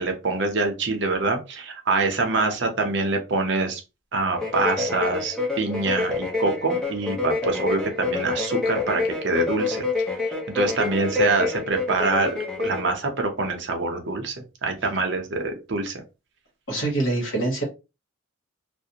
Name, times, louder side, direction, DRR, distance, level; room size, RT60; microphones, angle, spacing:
voice 1, 0.0-3.8 4.1-9.9 10.5-14.3 14.6-16.0, right 3 dB, 60° right, 4 dB, 0.6 m, -25 dB
sound 1, 4.3-12.9, left 3 dB, 5° left, 0.4 m, -27 dB
voice 2, 16.7-17.6, right 2 dB, 70° left, 1 dB, 1.1 m, -24 dB
2.4 x 2.0 x 2.8 m, 0.27 s
head